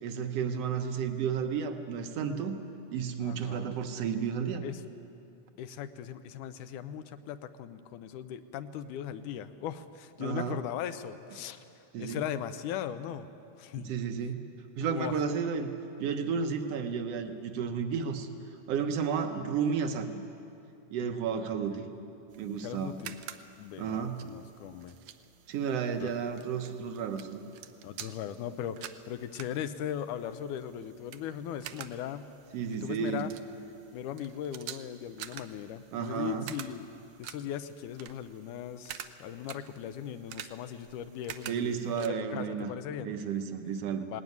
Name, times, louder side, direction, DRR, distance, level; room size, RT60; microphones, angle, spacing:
voice 1, 0.0-2.6 2.9-4.7 10.2-10.6 11.9-12.2 13.8-14.5 14.8-15.7 16.0-18.3 18.7-20.2 20.9-21.9 22.4-23.0 23.8-24.2 25.5-27.4 32.5-33.3 35.9-36.5 41.5-42.7 43.0-44.1, right 6 dB, 60° right, 6 dB, 1.9 m, -32 dB
voice 2, 3.2-3.8 4.6-4.8 5.6-11.6 12.0-13.3 13.6-13.9 14.9-15.2 21.7-21.8 22.6-23.1 23.6-25.0 26.0-26.1 27.8-32.3 32.7-33.3 33.9-36.9 37.2-43.1 44.1-44.2, left 10 dB, 75° left, 11 dB, 2.2 m, -38 dB
sound 1, 22.3-42.1, right 11 dB, 75° right, 2.2 m, -49 dB
19.5 x 19.0 x 9.5 m, 2.7 s
omnidirectional pair, 3.8 m